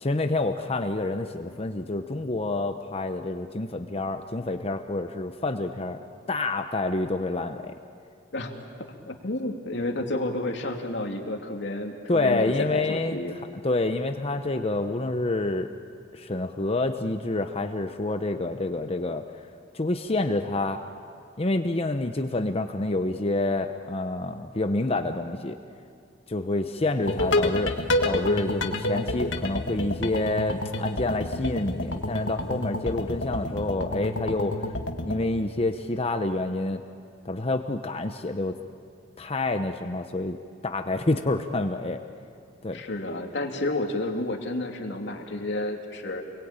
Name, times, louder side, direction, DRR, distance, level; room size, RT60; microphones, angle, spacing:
voice 1, 0.0-6.0 6.3-7.7 12.1-13.2 13.6-15.7 16.1-19.2 19.7-20.8 21.4-25.6 26.3-27.7 28.0-34.6 35.0-36.8 37.2-38.5 39.2-40.4 40.6-42.0 42.6-42.8, left 2 dB, 35° left, 6 dB, 0.9 m, -28 dB
voice 2, 9.0-13.4 42.7-46.2, left 1 dB, 65° left, 2 dB, 2.8 m, -31 dB
sound 1, 27.0-35.2, left 1 dB, 85° left, 1.7 m, -29 dB
29.0 x 22.5 x 8.9 m, 2.3 s
head